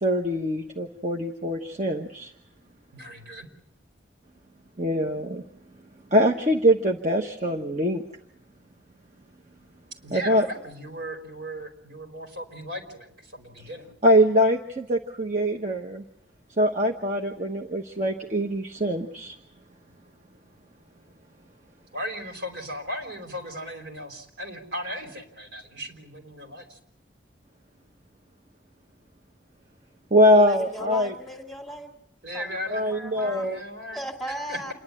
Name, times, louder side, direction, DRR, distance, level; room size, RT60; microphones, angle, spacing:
voice 1, 0.0-2.3 4.8-5.4 6.1-8.0 10.1-10.5 14.0-16.0 16.6-19.3 30.1-31.1 32.7-33.6, equal, 40° right, 2 dB, 1.2 m, -23 dB
voice 2, 2.9-3.5 10.0-13.9 21.9-26.8 32.2-34.0 34.5-34.7, equal, 75° right, 3 dB, 5.0 m, -37 dB
voice 3, 30.3-31.9 32.3-33.5 33.9-34.7, equal, ahead, 1 dB, 2.3 m, -37 dB
28.5 x 11.5 x 9.9 m, 0.78 s
head